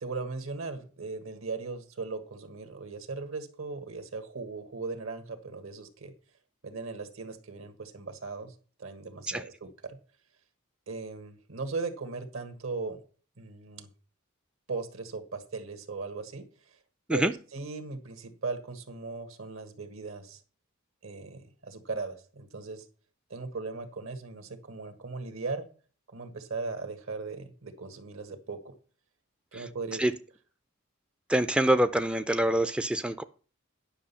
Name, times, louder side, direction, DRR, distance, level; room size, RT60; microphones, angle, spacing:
voice 1, 0.0-6.1 6.6-8.5 8.8-10.0 10.9-13.0 13.4-13.9 14.7-16.5 17.1-20.4 21.0-22.8 23.3-25.6 26.1-28.7 29.5-30.1, right 3 dB, 75° right, 9 dB, 1.6 m, -38 dB
voice 2, 31.3-33.2, right 1 dB, 5° right, 11 dB, 0.3 m, -25 dB
10.0 x 6.0 x 5.6 m, 0.39 s
head